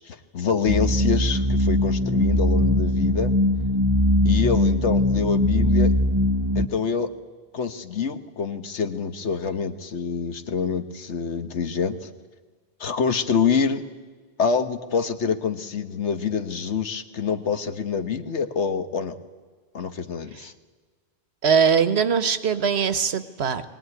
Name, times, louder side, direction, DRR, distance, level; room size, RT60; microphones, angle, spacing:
voice 1, 0.0-3.3 4.2-5.9 6.5-7.1 7.5-12.1 12.8-13.8 14.4-19.2 19.7-20.5, left 6 dB, 85° left, 9 dB, 1.5 m, -26 dB
sound 1, 0.7-6.7, left 1 dB, 25° right, 0.9 m, -21 dB
voice 2, 21.4-23.6, right 6 dB, 70° right, 13 dB, 1.3 m, -21 dB
22.0 x 18.5 x 9.6 m, 1.5 s
omnidirectional pair, 1.1 m